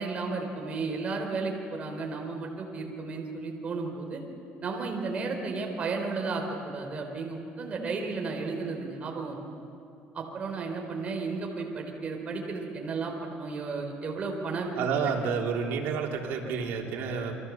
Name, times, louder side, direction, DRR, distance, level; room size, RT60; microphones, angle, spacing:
voice 1, 0.0-4.2 4.6-9.4 10.1-14.7, right 4 dB, 35° right, 2 dB, 3.9 m, -33 dB
voice 2, 14.8-17.3, right 6 dB, 80° right, 0 dB, 3.7 m, -29 dB
29.0 x 23.5 x 7.4 m, 2.7 s
cardioid pair, 145°, 4 cm